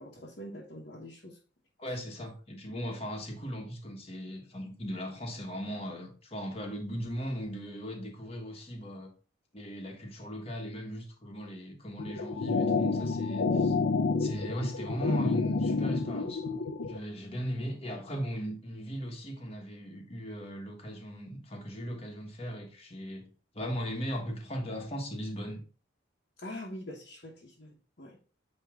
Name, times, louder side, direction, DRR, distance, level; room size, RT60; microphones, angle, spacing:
voice 1, 0.0-1.4 26.4-28.2, left 1 dB, 50° left, 1.2 m, -44 dB
voice 2, 1.8-9.1 9.5-13.7 14.2-23.3 23.5-25.6, equal, 30° left, 1.4 m, -38 dB
sound 1, 12.0-17.0, left 4 dB, 85° left, 0.7 m, -29 dB
9.0 x 3.1 x 3.6 m
head